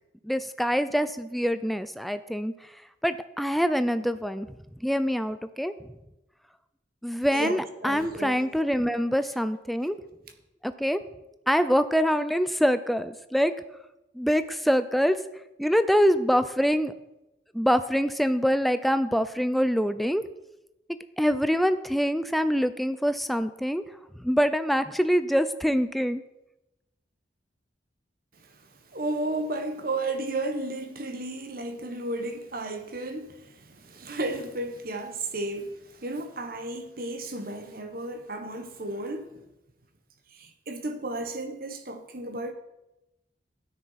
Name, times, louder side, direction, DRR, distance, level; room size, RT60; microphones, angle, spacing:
voice 1, 0.2-2.5 3.0-4.5 4.8-5.7 7.0-10.0 10.6-11.0 11.5-13.5 14.1-15.2 15.6-16.9 17.5-20.2 21.2-23.8 24.2-26.2, equal, ahead, 0.6 m, -25 dB
voice 2, 7.8-8.4 28.4-39.3 40.3-42.5, right 2 dB, 55° right, 1.5 m, -33 dB
13.0 x 9.7 x 5.9 m
head